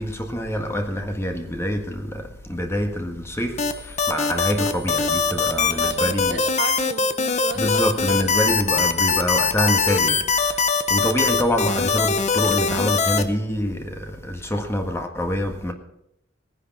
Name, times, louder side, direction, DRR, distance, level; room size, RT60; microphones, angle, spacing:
voice 1, 0.0-6.4 7.5-10.6 10.9-15.7, equal, 15° left, 1.7 m, -26 dB
sound 1, 3.6-13.2, left 5 dB, 35° left, 1.0 m, -21 dB
voice 2, 5.6-8.4, right 4 dB, 70° right, 2.3 m, -34 dB
18.5 x 10.0 x 6.1 m
head